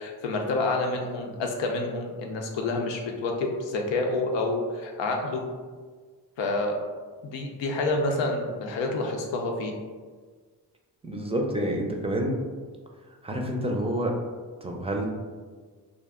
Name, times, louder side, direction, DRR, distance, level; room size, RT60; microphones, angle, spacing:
voice 1, 0.0-5.4 6.4-6.8 7.3-9.7, left 2 dB, 90° left, 2 dB, 0.6 m, -28 dB
voice 2, 11.0-12.4 13.2-14.2 14.6-15.1, right 1 dB, 15° right, 1 dB, 0.4 m, -28 dB
2.3 x 2.1 x 3.5 m, 1.5 s
cardioid pair, 60°, 43 cm